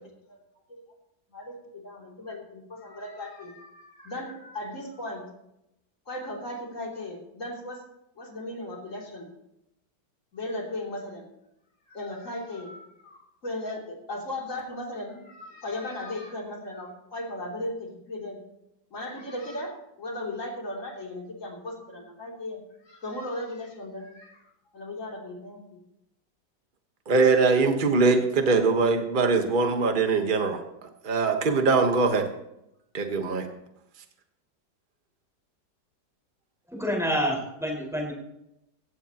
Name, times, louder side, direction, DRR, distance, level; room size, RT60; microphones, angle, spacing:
voice 1, 1.3-5.2 6.1-7.8 8.2-9.3 10.3-11.3 11.9-18.4 18.9-25.8, left 1 dB, 45° left, -1 dB, 3.5 m, -37 dB
voice 2, 27.1-30.6 31.0-32.3 32.9-33.5, right 4 dB, 30° right, 5 dB, 1.4 m, -22 dB
voice 3, 36.7-38.1, equal, ahead, -1 dB, 4.8 m, -28 dB
17.0 x 15.5 x 3.0 m, 0.84 s
omnidirectional pair, 1.9 m